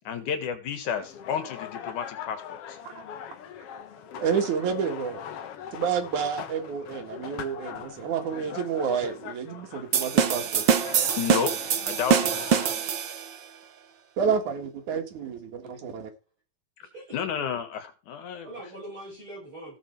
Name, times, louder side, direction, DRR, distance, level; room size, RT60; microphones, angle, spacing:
voice 1, 0.1-2.6 11.2-11.5 11.9-12.5 17.1-18.5, left 7 dB, 85° left, 8 dB, 3.2 m, -31 dB
sound 1, 1.0-12.8, left 9 dB, 60° left, 2.0 m, -41 dB
voice 2, 4.2-5.2 5.7-10.6 14.2-16.1, right 7 dB, 80° right, 4 dB, 3.4 m, -29 dB
sound 2, 9.9-13.4, right 7 dB, 60° right, 1.2 m, -24 dB
voice 3, 16.8-17.2 18.4-19.8, right 1 dB, 40° right, -4 dB, 7.6 m, -43 dB
15.5 x 7.9 x 4.6 m, 0.30 s
omnidirectional pair, 3.4 m